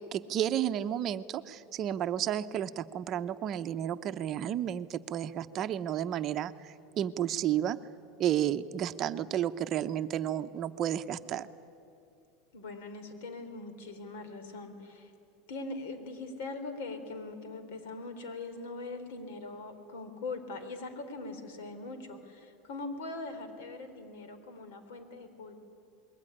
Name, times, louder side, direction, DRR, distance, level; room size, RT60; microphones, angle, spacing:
voice 1, 0.0-7.8 8.2-11.5, right 10 dB, 35° right, 10 dB, 0.7 m, -32 dB
voice 2, 12.5-15.1 15.5-25.6, left 3 dB, 80° left, 9 dB, 3.9 m, -41 dB
27.5 x 21.5 x 10.0 m, 2.7 s
supercardioid pair, 155°, 0 cm